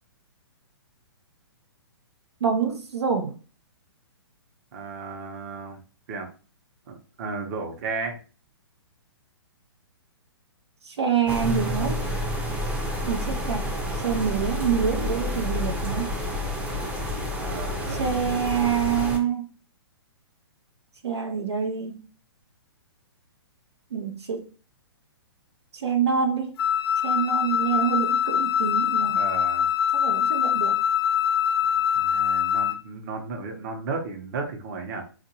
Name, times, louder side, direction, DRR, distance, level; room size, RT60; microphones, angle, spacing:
voice 1, 2.4-3.4 10.8-12.0 13.1-13.7 14.0-16.1 17.9-19.5 21.0-22.0 23.9-24.5 25.7-26.5 27.0-29.2 29.9-30.8, right 7 dB, 85° right, 0.7 m, -26 dB
voice 2, 4.7-5.8 6.1-6.3 6.9-8.2 13.3-13.4 17.4-18.2 29.0-29.7 31.9-35.0, right 4 dB, 45° right, 0.9 m, -34 dB
sound 1, 11.3-19.2, left 1 dB, 10° right, 0.5 m, -29 dB
Wind instrument woodwind instrument, 26.6-32.8, left 9 dB, 65° left, 0.4 m, -23 dB
3.9 x 2.5 x 2.8 m
hypercardioid pair, 140°, 14 cm